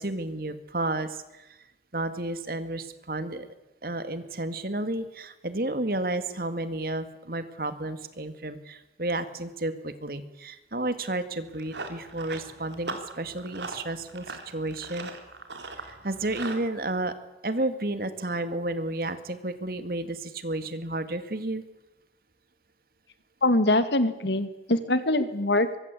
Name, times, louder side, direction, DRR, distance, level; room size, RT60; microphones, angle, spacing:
voice 1, 0.0-1.6 1.9-3.5 3.8-15.1 15.8-17.2 17.4-21.6 24.2-24.4, right 2 dB, 55° right, 10 dB, 2.3 m, -32 dB
Run, 11.3-16.6, right 3 dB, 85° right, 3.8 m, -40 dB
voice 2, 23.4-25.8, left 1 dB, 75° left, 11 dB, 2.3 m, -23 dB
23.5 x 23.5 x 8.5 m, 0.96 s
head